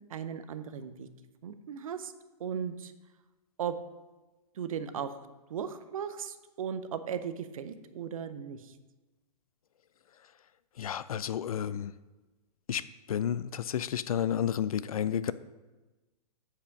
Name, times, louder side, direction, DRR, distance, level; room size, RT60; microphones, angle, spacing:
voice 1, 0.1-1.1 1.4-2.1 2.4-2.9 3.6-3.7 4.5-5.2 5.5-8.7, right 8 dB, 60° right, 11 dB, 0.8 m, -37 dB
voice 2, 10.8-11.9 12.7-12.8 13.1-15.3, left 9 dB, 65° left, 16 dB, 0.4 m, -31 dB
8.3 x 4.9 x 5.9 m, 1.2 s
figure-of-eight pair, 115°, 20 cm